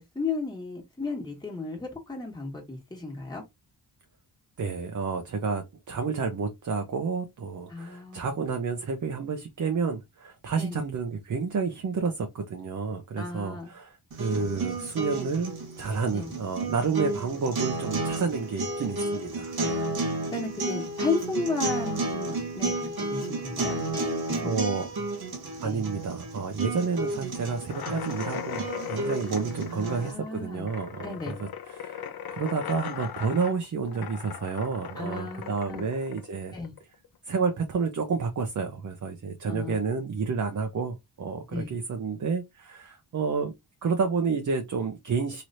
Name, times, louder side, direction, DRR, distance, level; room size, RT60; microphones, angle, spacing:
voice 1, 0.0-3.4 7.7-8.3 10.6-10.9 13.2-13.7 16.1-16.3 19.6-19.9 20.3-22.7 23.1-24.5 25.6-25.8 29.7-30.7 31.0-31.4 35.0-35.9 36.5-36.7 39.5-39.8 41.5-41.7, left 3 dB, 10° left, 1.4 m, -34 dB
voice 2, 4.6-19.9 24.4-24.9 25.6-36.6 37.3-43.5 43.8-45.4, right 5 dB, 45° right, 0.7 m, -30 dB
sound 1, 14.1-30.1, right 2 dB, 60° right, 1.4 m, -32 dB
sound 2, 27.7-37.1, left 9 dB, 65° left, 0.6 m, -39 dB
3.2 x 2.9 x 2.6 m
cardioid pair, 80°, 41 cm